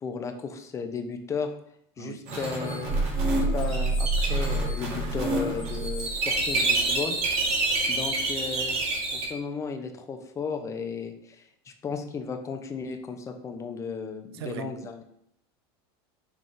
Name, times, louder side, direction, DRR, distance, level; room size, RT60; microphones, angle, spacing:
voice 1, 0.0-1.5 2.0-3.0 3.2-7.2 7.9-8.8 9.1-15.0, left 5 dB, 25° left, 0.6 m, -34 dB
voice 2, 2.0-2.4 14.4-14.7, right 10 dB, 85° right, 0.4 m, -39 dB
sound 1, 2.3-9.2, right 2 dB, 50° right, 1.5 m, -28 dB
sound 2, 2.9-6.5, right 2 dB, 25° right, 0.7 m, -28 dB
5.8 x 3.5 x 2.6 m
supercardioid pair, 120°, 13 cm